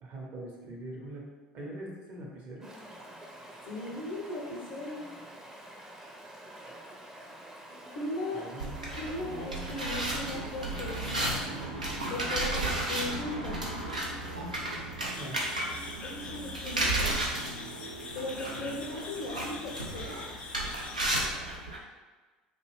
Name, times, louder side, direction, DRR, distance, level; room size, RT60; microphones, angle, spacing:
voice 1, 0.0-1.3 1.5-2.7 8.3-8.8 15.0-15.5, right 1 dB, 50° right, -2 dB, 0.7 m, -42 dB
Stream, 2.6-11.6, right 1 dB, 15° right, 0.6 m, -48 dB
voice 2, 3.7-5.1 7.9-8.5 8.9-11.4 12.0-13.6 16.0-17.2 18.1-20.2, left 2 dB, 55° left, -2 dB, 0.7 m, -38 dB
sound 1, 8.6-21.8, right 1 dB, 90° right, 0.4 m, -34 dB
sound 2, 15.1-21.3, left 3 dB, 30° left, 0.3 m, -44 dB
2.4 x 2.2 x 3.2 m, 1.3 s
figure-of-eight pair, 65°, 4 cm